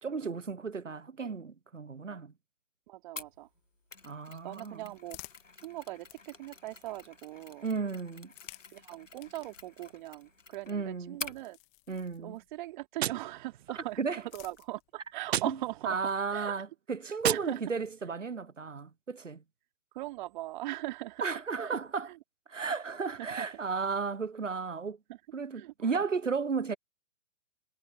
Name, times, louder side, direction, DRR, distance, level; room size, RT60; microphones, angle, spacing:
voice 1, 0.0-2.3 4.0-4.9 7.6-8.3 10.7-11.2 11.9-12.4 14.0-14.2 15.4-15.6 15.8-19.4 21.2-22.1 22.5-25.0 25.3-26.8, right 5 dB, 90° right, 1.0 m, -34 dB
voice 2, 2.9-3.5 4.3-5.2 5.6-7.7 8.7-11.6 12.2-16.0 16.3-16.6 17.3-17.6 19.9-21.2 21.6-21.8 22.1-22.2 23.2-23.5 25.1-25.2 25.5-26.0, right 17 dB, 40° right, 3.3 m, -40 dB
Mechanisms, 3.2-11.4, left 3 dB, 90° left, 1.7 m, -48 dB
sound 1, 4.8-7.3 8.1-12.7 13.7-15.2, left 35 dB, 30° left, 2.2 m, -56 dB
Gunshot gunfire, 13.0-14.1 15.2-16.1 17.2-18.1, right 11 dB, 60° right, 0.5 m, -35 dB
figure-of-eight pair, 120°, 37 cm